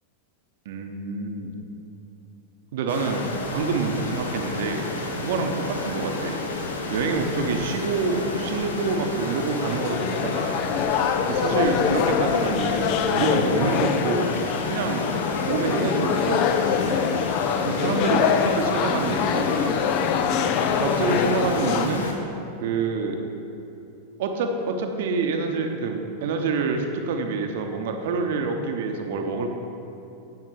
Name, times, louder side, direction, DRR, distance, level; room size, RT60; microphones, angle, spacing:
voice 1, 0.6-1.5 2.7-3.2 3.5-4.9 5.2-6.4 6.9-10.6 11.3-14.3 14.7-15.1 15.4-17.2 17.6-19.7 20.8-22.1 22.6-23.2 24.2-29.6, right 4 dB, 55° right, 4 dB, 0.9 m, -27 dB
sound 1, 2.9-22.1, left 2 dB, 70° left, 1.2 m, -31 dB
sound 2, 9.3-21.9, left 8 dB, 40° left, 0.5 m, -24 dB
9.5 x 7.7 x 4.8 m, 2.9 s
figure-of-eight pair, 90°, 0 cm